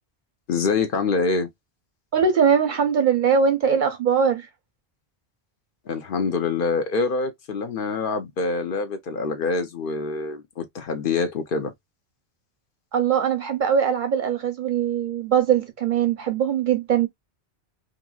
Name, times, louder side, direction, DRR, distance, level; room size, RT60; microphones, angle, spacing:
voice 1, 0.5-1.5 5.9-11.7, left 4 dB, 60° left, 0.8 m, -25 dB
voice 2, 2.1-4.4 12.9-17.1, right 7 dB, 55° right, 0.6 m, -21 dB
2.9 x 2.5 x 2.3 m
omnidirectional pair, 1.1 m